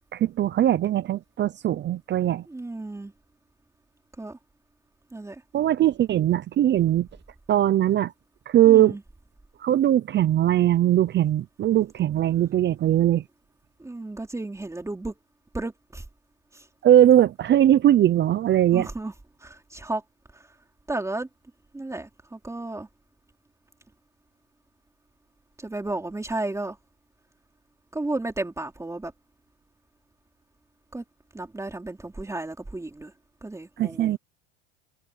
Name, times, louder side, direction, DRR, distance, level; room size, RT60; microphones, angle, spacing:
voice 1, 0.1-2.4 5.5-7.1 7.5-8.1 8.5-9.0 9.6-13.2 16.8-18.9 33.8-34.2, right 12 dB, 35° right, 0.7 m, -20 dB
voice 2, 2.5-3.1 4.2-4.4 5.1-5.4 8.6-9.0 13.8-15.1 15.5-16.0 16.5-16.7 18.7-19.1 19.4-20.0 20.3-20.5 20.9-21.3 21.7-22.9 25.6-26.8 27.9-29.1 30.9-31.0 31.3-33.1 33.4-34.2, right 2 dB, 10° right, 3.7 m, -33 dB
supercardioid pair, 120°, 33 cm